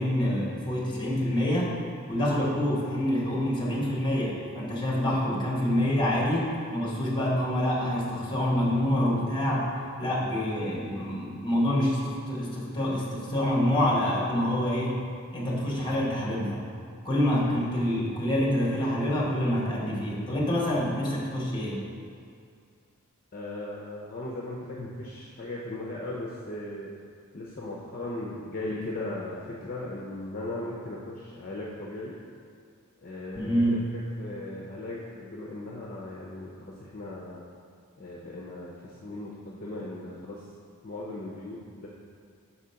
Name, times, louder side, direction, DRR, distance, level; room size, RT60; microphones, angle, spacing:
voice 1, 0.0-1.7 2.1-9.7 10.0-15.0 15.3-16.7 17.0-21.8 33.4-33.8, left 1 dB, 20° left, -4 dB, 1.2 m, -26 dB
voice 2, 23.3-26.9 27.3-32.1 33.0-33.8 34.2-37.4 38.0-40.4 40.8-41.9, left 2 dB, 45° left, -4 dB, 0.6 m, -37 dB
5.0 x 4.3 x 5.6 m, 2.3 s
head